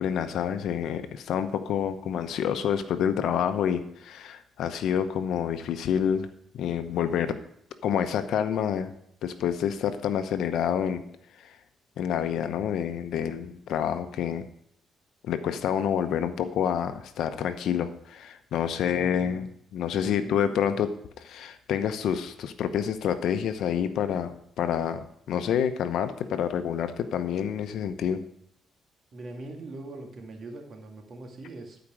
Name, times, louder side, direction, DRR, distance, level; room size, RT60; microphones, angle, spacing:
voice 1, 0.0-6.3 6.5-7.4 7.8-8.9 9.2-11.0 11.4-11.5 12.0-14.5 15.2-28.2, left 8 dB, 75° left, 10 dB, 0.9 m, -28 dB
voice 2, 18.8-19.5 20.0-20.8 29.1-31.8, right 2 dB, 55° right, 3 dB, 2.2 m, -42 dB
12.0 x 5.1 x 6.3 m, 0.71 s
cardioid pair, 90°, 0 cm